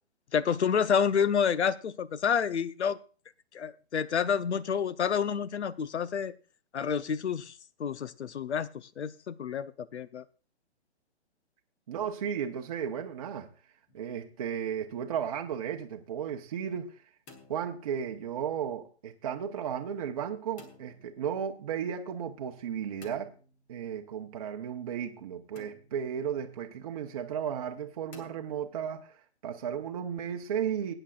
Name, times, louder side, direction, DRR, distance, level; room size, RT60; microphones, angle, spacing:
voice 1, 0.3-3.0 3.5-6.3 6.7-10.2, left 7 dB, 80° left, 0.8 m, -29 dB
voice 2, 11.9-13.5 13.9-16.9 17.5-23.3 23.7-29.1 29.4-30.9, right 8 dB, 35° right, 0.8 m, -34 dB
sound 1, 13.9-14.4 17.0-18.2 20.6-21.2 23.0-24.0 25.6-26.2 28.1-29.0, left 3 dB, 15° left, 0.8 m, -55 dB
20.5 x 9.0 x 2.4 m
hypercardioid pair, 155°, 33 cm